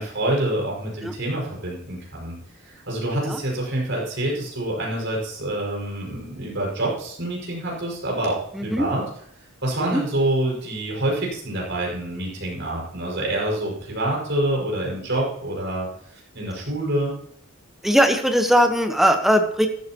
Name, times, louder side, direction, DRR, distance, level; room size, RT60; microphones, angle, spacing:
voice 1, 0.0-2.4 2.6-9.0 9.6-15.9 16.1-17.2, right 1 dB, 60° right, -3 dB, 5.7 m, -26 dB
voice 2, 8.5-8.9 9.9-10.0 17.8-19.7, equal, ahead, 5 dB, 1.1 m, -19 dB
14.0 x 13.0 x 3.0 m, 0.69 s
head